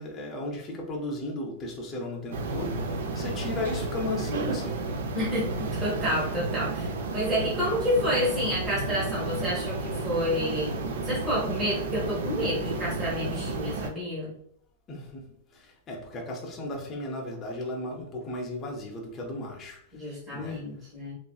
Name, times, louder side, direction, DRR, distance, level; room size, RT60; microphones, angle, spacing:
voice 1, 0.0-4.9 14.9-15.3 15.5-19.8 20.3-20.7, left 2 dB, 15° left, 0.5 m, -35 dB
sound 1, 2.3-13.9, right 3 dB, 80° right, 0.4 m, -32 dB
voice 2, 5.1-10.7 11.0-14.3 19.9-21.1, equal, 10° right, 1.1 m, -29 dB
3.0 x 2.7 x 2.3 m
supercardioid pair, 180°, 0 cm